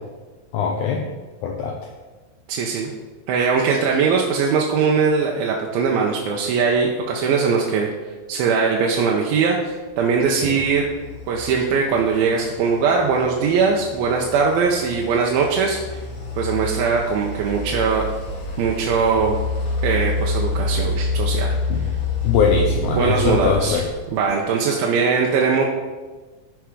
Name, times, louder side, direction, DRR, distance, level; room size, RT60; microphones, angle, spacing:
voice 1, 0.5-1.0 1.4-1.8 10.4-10.6 21.7-21.8 22.2-23.8, left 6 dB, 75° left, 1 dB, 1.9 m, -21 dB
voice 2, 2.5-2.9 3.3-7.9 8.3-10.9 11.3-16.0 16.4-18.1 18.6-19.4 19.8-21.5 22.9-23.8 24.1-25.7, right 5 dB, 85° right, -1 dB, 2.6 m, -20 dB
sound 1, 10.0-24.4, left 2 dB, 55° left, 4.1 m, -28 dB
13.5 x 4.7 x 4.8 m, 1.3 s
omnidirectional pair, 4.2 m